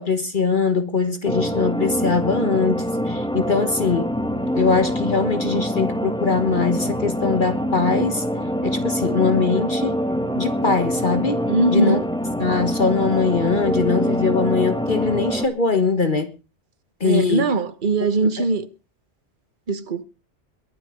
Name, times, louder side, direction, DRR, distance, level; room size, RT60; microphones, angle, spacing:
voice 1, 0.0-4.1 4.5-8.2 8.6-10.0 10.3-11.4 11.7-12.0 12.4-16.3 17.0-17.5 18.4-18.5, left 4 dB, 45° left, 1.6 m, -22 dB
sound 1, 1.2-15.5, equal, 5° left, 1.4 m, -25 dB
voice 2, 11.5-12.0 17.0-18.7 19.7-20.0, right 3 dB, 45° right, 1.3 m, -21 dB
22.0 x 7.7 x 5.1 m
omnidirectional pair, 1.2 m